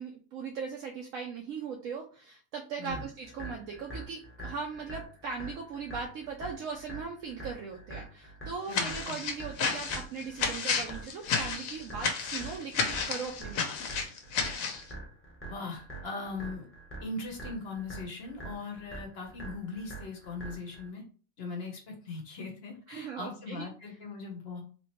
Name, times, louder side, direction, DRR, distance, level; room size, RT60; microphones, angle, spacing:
voice 1, 0.0-13.7 22.9-23.7, right 5 dB, 75° right, 1 dB, 1.0 m, -39 dB
sound 1, 2.9-20.9, right 2 dB, 10° left, 1.0 m, -45 dB
sound 2, 8.7-14.8, left 5 dB, 80° left, 1.1 m, -32 dB
voice 2, 8.7-9.2 15.5-16.7 17.0-21.0 21.4-24.6, left 3 dB, 55° left, 2 dB, 1.0 m, -40 dB
3.5 x 2.9 x 2.9 m, 0.39 s
omnidirectional pair, 1.4 m